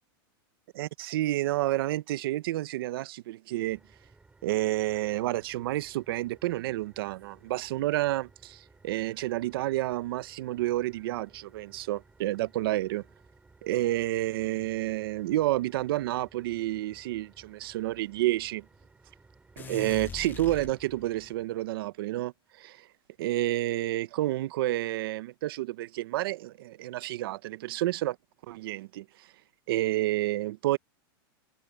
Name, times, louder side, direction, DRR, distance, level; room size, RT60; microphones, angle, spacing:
voice 1, 0.8-3.8 4.4-13.0 13.6-18.6 19.6-22.9 23.2-28.2 28.5-29.0 29.7-30.8, right 16 dB, 70° right, 1.0 m, -30 dB
sound 1, 3.6-21.3, right 3 dB, 10° right, 2.9 m, -59 dB
sound 2, 19.6-21.3, left 6 dB, 15° left, 0.7 m, -42 dB
open air
supercardioid pair, 145°, 13 cm